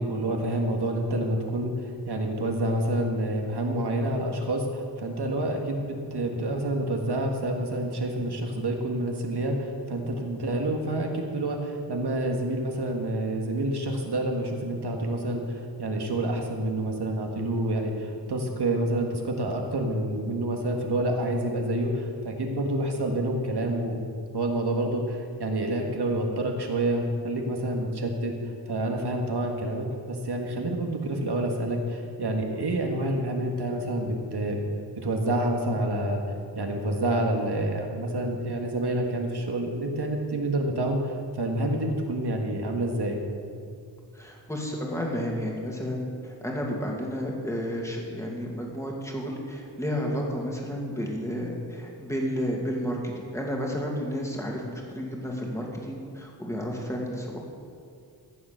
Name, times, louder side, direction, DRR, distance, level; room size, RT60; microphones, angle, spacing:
voice 1, 0.0-1.7 2.0-15.4 15.8-24.0 24.3-28.3 28.7-34.6 35.0-36.2 36.5-41.1 41.4-43.2, right 1 dB, 65° right, 2 dB, 1.7 m, -28 dB
voice 2, 44.1-53.0 53.3-57.4, equal, 5° left, -1 dB, 2.2 m, -31 dB
14.5 x 7.0 x 6.6 m, 2.4 s
wide cardioid pair, 105°, 42 cm